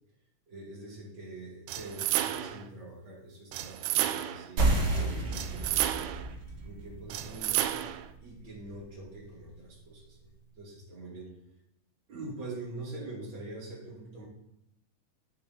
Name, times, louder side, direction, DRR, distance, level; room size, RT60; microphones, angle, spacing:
voice 1, 0.5-4.9 5.3-6.2 6.6-7.7 8.2-10.3 10.6-11.3 12.1-14.3, right 2 dB, 40° right, -5 dB, 3.2 m, -44 dB
sound 1, 1.7-2.7 3.5-4.5 5.3-6.3 7.1-8.1, right 13 dB, 80° right, 2.0 m, -31 dB
sound 2, 4.6-9.7, right 2 dB, 65° right, 3.0 m, -32 dB
Packing tape duct tape, 4.7-5.8 6.2-6.3 6.5-6.6 7.1-7.5 8.5-8.7 9.3-9.4, left 2 dB, 85° left, 5.0 m, -48 dB
12.0 x 8.5 x 2.8 m, 0.81 s
omnidirectional pair, 3.7 m